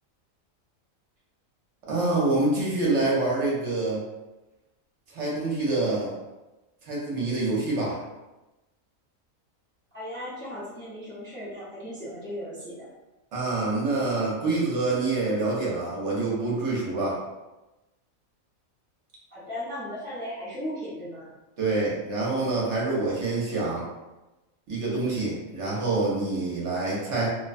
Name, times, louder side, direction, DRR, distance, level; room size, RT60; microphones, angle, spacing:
voice 1, 1.9-4.0 5.1-6.1 6.8-8.0 13.3-17.2 21.6-23.9 24.7-27.3, right 2 dB, 60° right, -5 dB, 1.0 m, -26 dB
voice 2, 9.9-12.9 19.3-21.3, equal, 10° left, -11 dB, 0.5 m, -36 dB
2.6 x 2.1 x 2.5 m, 1.0 s
omnidirectional pair, 1.4 m